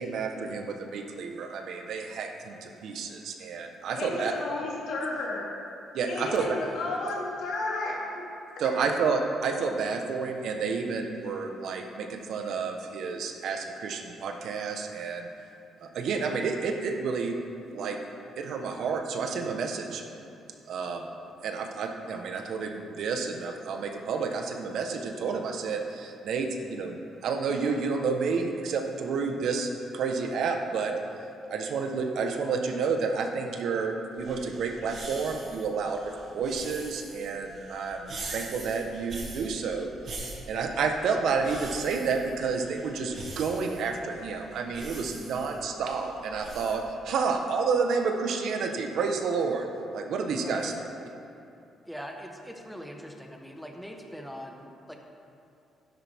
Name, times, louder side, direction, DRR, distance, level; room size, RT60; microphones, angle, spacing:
voice 1, 0.0-4.3 5.9-6.6 8.6-15.3 15.8-17.4 17.7-18.0 18.4-20.0 20.7-21.1 21.4-30.9 31.5-40.2 40.5-49.7 49.9-50.7, right 5 dB, 75° right, 4 dB, 1.1 m, -30 dB
voice 2, 3.9-5.5 6.1-8.2 8.5-8.6 50.3-50.7, left 2 dB, 80° left, -4 dB, 2.8 m, -33 dB
sound 1, 34.2-46.8, right 3 dB, 55° right, 2.1 m, -43 dB
voice 3, 51.9-55.0, equal, ahead, 2 dB, 1.3 m, -42 dB
12.0 x 10.5 x 3.6 m, 2.7 s
cardioid pair, 90°, 0 cm